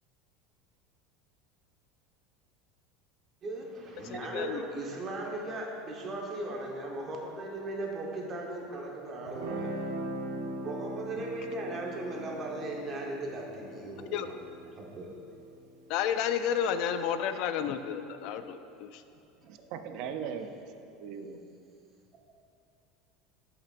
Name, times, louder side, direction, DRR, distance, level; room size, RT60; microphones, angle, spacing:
voice 1, 3.4-9.9 10.6-14.4 14.7-15.2 19.9-20.0, right 2 dB, 30° right, -1 dB, 1.1 m, -38 dB
voice 2, 4.1-4.6 11.2-11.3 14.1-14.3 15.9-19.0, left 8 dB, 55° left, 10 dB, 0.4 m, -31 dB
Guitar, 9.3-16.4, right 1 dB, 85° right, 1.0 m, -40 dB
voice 3, 19.4-20.5 21.0-21.4, right 7 dB, 55° right, 7 dB, 0.5 m, -39 dB
12.5 x 5.8 x 2.5 m, 2.6 s
supercardioid pair, 145°, 0 cm